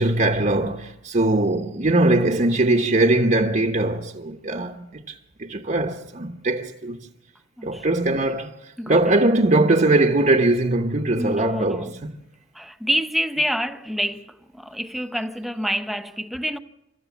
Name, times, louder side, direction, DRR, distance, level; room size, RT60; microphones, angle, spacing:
voice 1, 0.0-5.0 5.4-7.0 7.6-8.5 8.9-12.1, right 2 dB, 40° right, 1.1 m, -21 dB
voice 2, 7.6-8.4 8.8-9.1 11.2-12.0 12.5-16.6, equal, ahead, 0.9 m, -28 dB
28.0 x 13.5 x 7.3 m
head